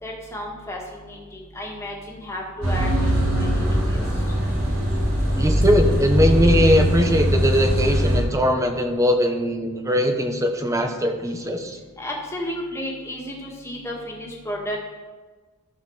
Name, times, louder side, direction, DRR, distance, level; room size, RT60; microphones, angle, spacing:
voice 1, 0.0-4.0 12.0-14.8, left 1 dB, 15° left, -2 dB, 1.8 m, -33 dB
sound 1, 2.6-8.2, equal, 65° right, 2.7 m, -21 dB
voice 2, 5.4-11.8, equal, 15° right, 5 dB, 1.0 m, -20 dB
14.0 x 4.9 x 6.3 m, 1.4 s
head